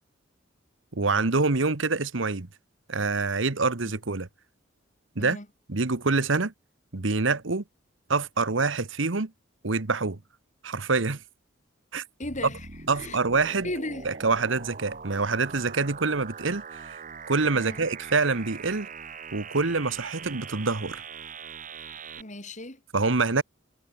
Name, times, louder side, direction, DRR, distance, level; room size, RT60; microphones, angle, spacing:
voice 1, 0.9-2.5 2.9-4.3 5.1-5.4 5.7-6.5 6.9-7.6 8.1-9.3 9.6-10.2 10.6-11.2 11.9-12.0 12.4-12.5 12.9-13.7 14.0-17.0 17.3-18.9 19.3-21.0 22.9-23.4, right 3 dB, 70° right, 1.3 m, -26 dB
voice 2, 12.2-12.7 12.9-13.2 13.6-14.1 17.5-17.8 22.2-22.8, left 1 dB, 40° left, 6.9 m, -36 dB
sound 1, 12.2-22.2, right 5 dB, 40° right, 2.2 m, -42 dB
head